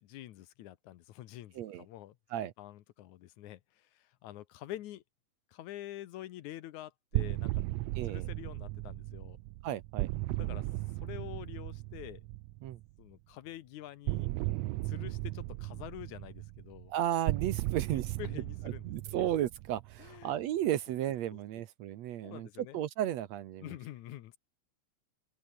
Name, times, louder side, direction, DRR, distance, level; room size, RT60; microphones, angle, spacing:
voice 1, 0.0-5.0 5.5-7.5 8.0-9.4 10.4-10.7 11.0-12.2 13.0-14.3 14.9-16.9 17.7-19.3 20.0-20.3 21.3-21.4 22.2-22.8 23.6-24.4, left 14 dB, 75° left, 2.3 m, -47 dB
sound 1, 7.1-12.9 14.1-20.3, right 18 dB, 85° right, 1.5 m, -36 dB
voice 2, 8.0-8.3 9.6-10.1 12.6-12.8 16.9-18.2 18.8-23.7, right 12 dB, 65° right, 2.0 m, -34 dB
open air
omnidirectional pair, 3.6 m